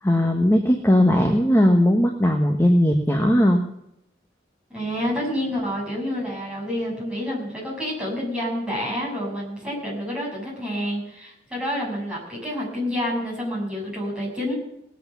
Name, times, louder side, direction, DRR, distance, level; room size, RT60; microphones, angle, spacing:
voice 1, 0.0-3.6, equal, 15° left, 3 dB, 1.2 m, -18 dB
voice 2, 4.7-14.5, equal, 5° right, -5 dB, 7.2 m, -28 dB
19.0 x 8.4 x 7.0 m, 0.80 s
head